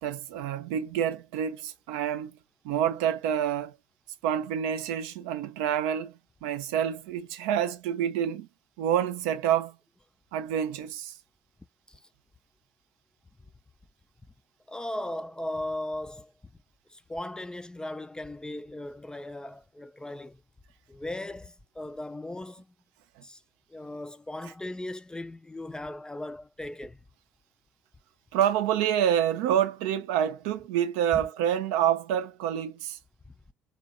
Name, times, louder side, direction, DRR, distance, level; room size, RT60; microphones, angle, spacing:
voice 1, 0.0-2.4 2.6-3.7 4.2-6.1 6.4-8.5 8.8-9.8 10.3-11.1 28.3-33.0, right 10 dB, 75° right, 0.4 m, -27 dB
voice 2, 14.7-16.3 16.9-20.4 20.9-22.7 23.2-23.4 23.7-27.0 31.1-31.2 33.3-33.4, left 1 dB, 10° left, 0.3 m, -37 dB
2.9 x 2.1 x 2.4 m
hypercardioid pair, 50°, 6 cm